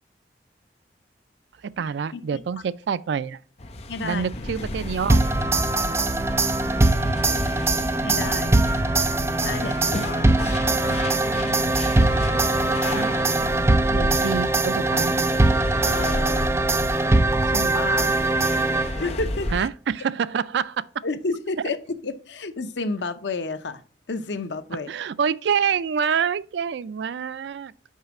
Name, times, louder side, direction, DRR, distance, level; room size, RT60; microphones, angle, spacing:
voice 1, 1.8-3.4 4.0-5.2 12.9-13.1 13.9-15.3 19.5-20.8 24.9-27.7, right 7 dB, 80° right, 0.4 m, -26 dB
sound 1, 3.6-19.6, left 1 dB, 35° left, 0.7 m, -32 dB
voice 2, 3.9-4.3 8.0-8.6 9.4-11.4 15.8-16.7 17.0-18.2 18.9-19.7 21.0-23.8 24.1-24.9, left 3 dB, 90° left, 0.7 m, -31 dB
sound 2, 4.3-14.4, left 1 dB, 65° left, 0.9 m, -39 dB
sound 3, 5.1-19.2, right 2 dB, 15° right, 0.4 m, -22 dB
5.5 x 5.0 x 5.8 m
head